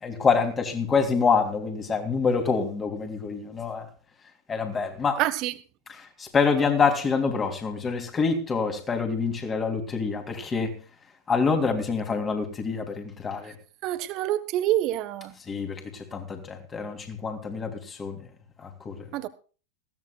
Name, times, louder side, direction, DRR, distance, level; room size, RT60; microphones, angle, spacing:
voice 1, 0.0-3.9 4.5-5.2 5.9-10.7 11.3-13.5 15.5-18.2 18.6-19.1, left 5 dB, 20° left, 3.1 m, -26 dB
voice 2, 5.2-5.5 13.8-15.3 19.1-19.3, right 13 dB, 40° right, 1.3 m, -26 dB
19.5 x 16.5 x 2.4 m
figure-of-eight pair, 90°, 0 cm